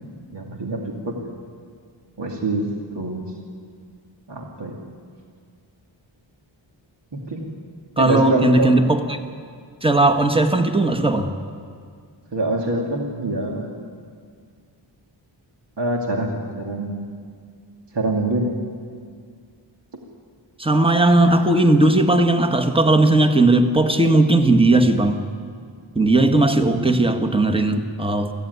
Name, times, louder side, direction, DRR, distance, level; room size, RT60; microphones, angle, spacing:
voice 1, 0.3-1.3 2.2-3.3 4.3-4.8 7.1-7.4 8.0-8.8 12.3-13.8 15.8-17.1 17.9-18.5 26.6-26.9, right 2 dB, 60° right, 0 dB, 2.6 m, -25 dB
voice 2, 8.0-9.2 9.8-11.3 20.6-25.2 25.9-28.3, right 2 dB, 10° right, 5 dB, 1.6 m, -17 dB
23.0 x 15.5 x 9.6 m, 2.1 s
wide cardioid pair, 70°, 47 cm